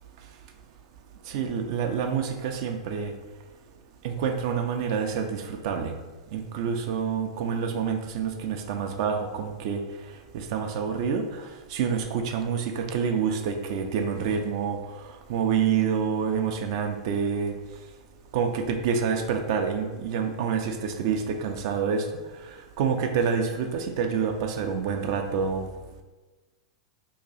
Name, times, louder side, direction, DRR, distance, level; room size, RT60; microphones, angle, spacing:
voice 1, 1.3-3.1 4.0-6.0 6.3-9.8 10.3-14.8 15.3-17.5 18.3-22.1 22.5-25.7, right 6 dB, 60° right, 5 dB, 0.4 m, -27 dB
2.8 x 2.6 x 4.0 m, 1.2 s
hypercardioid pair, 105°, 3 cm